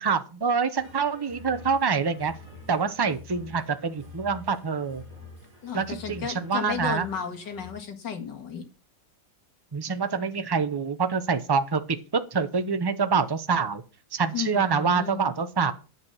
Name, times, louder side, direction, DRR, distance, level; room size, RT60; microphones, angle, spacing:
voice 1, 0.0-2.3 2.7-5.0 5.7-7.1 9.7-13.8 14.1-15.7, right 5 dB, 25° right, 10 dB, 0.5 m, -26 dB
sound 1, 0.8-7.7, left 2 dB, 45° right, 5.1 m, -47 dB
voice 2, 5.6-8.6 14.3-15.2, left 7 dB, 70° left, 4 dB, 2.6 m, -33 dB
10.5 x 8.3 x 5.7 m, 0.33 s
omnidirectional pair, 2.0 m